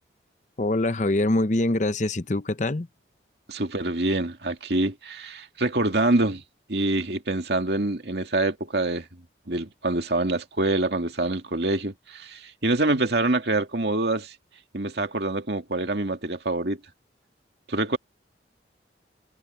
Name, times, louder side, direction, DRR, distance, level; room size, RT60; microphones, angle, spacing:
voice 1, 0.6-2.9, left 2 dB, 40° left, 0.8 m, -24 dB
voice 2, 3.5-6.4 6.7-9.1 9.5-14.3 14.7-16.8 17.7-18.0, right 2 dB, 60° right, 2.4 m, -25 dB
head